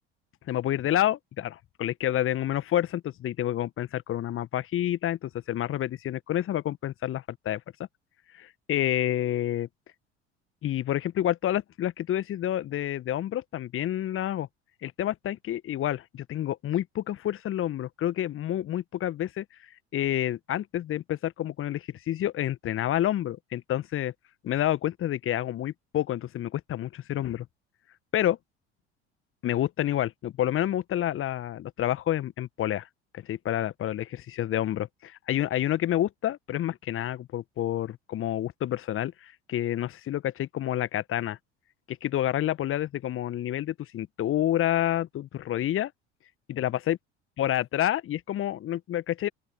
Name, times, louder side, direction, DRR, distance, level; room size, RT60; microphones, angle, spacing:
voice 1, 0.5-7.6 8.3-9.7 10.6-14.5 14.8-19.4 19.9-24.1 24.4-27.5 28.1-28.4 29.4-32.9 33.1-41.4 41.9-45.9 46.5-47.0 47.4-49.3, left 12 dB, 40° left, 1.5 m, -29 dB
open air
figure-of-eight pair, 65°, 34 cm